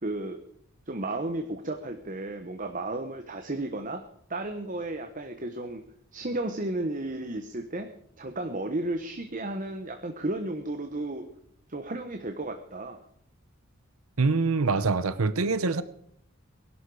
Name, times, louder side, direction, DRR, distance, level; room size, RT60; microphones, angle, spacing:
voice 1, 0.0-0.4 0.9-4.0 4.3-5.8 6.1-7.9 8.2-11.3 11.7-13.0, right 2 dB, 40° right, 1.1 m, -33 dB
voice 2, 14.2-15.8, right 4 dB, 90° right, 0.8 m, -24 dB
21.5 x 12.0 x 4.9 m
head